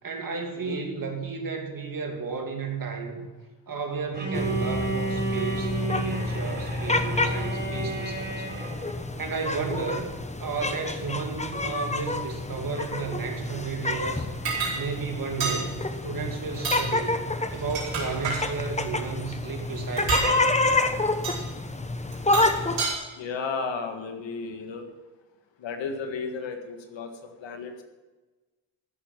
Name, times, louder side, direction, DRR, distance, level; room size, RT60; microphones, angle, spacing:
voice 1, 0.0-3.3 3.7-8.4 9.2-10.1 10.4-14.3 14.7-15.7 16.0-17.2 17.5-20.5, right 5 dB, 50° right, 2 dB, 2.8 m, -33 dB
Bowed string instrument, 4.1-9.0, right 3 dB, 25° right, 4.9 m, -32 dB
sound 1, 4.3-22.8, left 2 dB, 15° left, 1.1 m, -29 dB
sound 2, 14.5-14.8 15.4-15.6 16.5-16.9 17.5-18.4 20.0-20.3 21.2-21.4 22.1-22.9, right 4 dB, 85° right, 5.0 m, -28 dB
voice 2, 23.1-24.9 25.6-27.8, left 4 dB, 85° left, 5 dB, 1.8 m, -34 dB
15.0 x 7.0 x 7.4 m, 1.2 s
cardioid pair, 75°, 44 cm